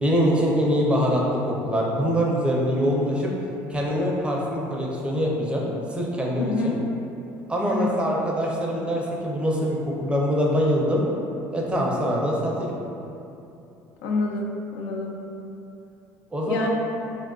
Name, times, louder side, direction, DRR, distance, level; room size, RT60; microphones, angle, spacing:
voice 1, 0.0-3.3 3.7-6.8 7.5-11.0 11.5-12.7 16.3-16.7, equal, 15° right, -3 dB, 0.5 m, -24 dB
voice 2, 6.4-6.8 7.7-7.9 14.0-15.2 16.5-16.7, left 3 dB, 75° left, 0 dB, 0.4 m, -27 dB
3.4 x 2.3 x 2.4 m, 2.8 s
supercardioid pair, 90°, 7 cm